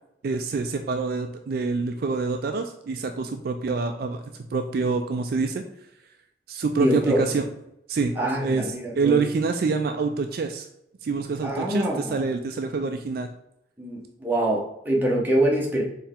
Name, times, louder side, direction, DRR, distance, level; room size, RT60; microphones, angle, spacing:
voice 1, 0.2-4.2 4.5-5.6 6.5-7.5 7.9-10.7 11.0-13.3, right 4 dB, 55° right, 6 dB, 0.3 m, -26 dB
voice 2, 6.8-7.2 8.2-9.2 11.4-12.2 13.8-15.8, right 1 dB, 10° right, -3 dB, 0.9 m, -24 dB
4.4 x 3.3 x 3.6 m, 0.83 s
head